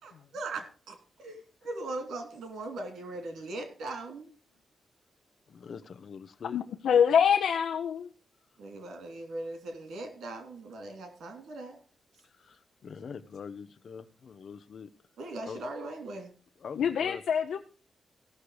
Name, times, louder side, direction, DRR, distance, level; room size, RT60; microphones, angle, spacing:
voice 1, 0.0-4.3 8.6-11.8 15.2-16.3, right 2 dB, 90° right, 7 dB, 3.0 m, -39 dB
voice 2, 5.5-6.6 12.2-14.9 15.5-15.6 16.6-17.2, left 6 dB, 55° left, 12 dB, 0.8 m, -44 dB
voice 3, 6.5-8.1 16.8-17.6, left 7 dB, 80° left, 4 dB, 0.8 m, -25 dB
16.5 x 6.7 x 4.8 m, 0.38 s
wide cardioid pair, 150°, 0 cm